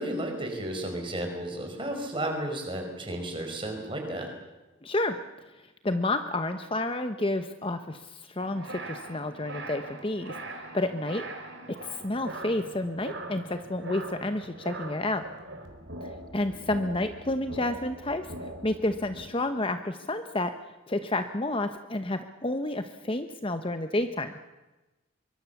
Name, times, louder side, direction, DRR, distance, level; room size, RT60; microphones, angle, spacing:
voice 1, 0.0-4.3, right 1 dB, 25° right, 3 dB, 5.0 m, -33 dB
voice 2, 4.8-5.2 5.8-10.4 10.7-11.2 11.8-15.2 16.3-18.3 18.6-20.5 20.9-24.3, left 2 dB, 25° left, 8 dB, 0.9 m, -30 dB
sound 1, 8.4-19.3, right 1 dB, 60° right, 3.8 m, -41 dB
24.0 x 23.5 x 7.1 m, 1.1 s
head